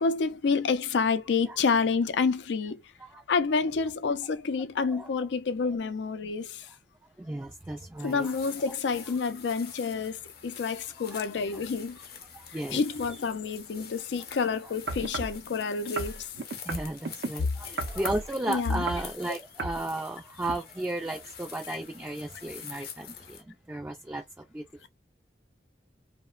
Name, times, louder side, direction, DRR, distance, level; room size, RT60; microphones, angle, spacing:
voice 1, 0.0-2.8 3.3-6.7 8.0-12.0 12.5-16.3 18.5-18.8 21.7-21.8, left 5 dB, 90° left, 0.4 m, -28 dB
voice 2, 7.2-8.3 8.6-8.8 11.1-11.2 12.3-12.8 16.6-24.2 24.5-24.6, right 1 dB, 10° right, 0.4 m, -34 dB
sound 1, 8.0-23.4, left 7 dB, 60° left, 0.7 m, -46 dB
sound 2, 14.9-15.4 16.0-17.3 17.8-18.3 18.7-19.1 19.6-19.8 20.4-20.5, right 2 dB, 80° right, 0.6 m, -34 dB
2.8 x 2.1 x 2.2 m
head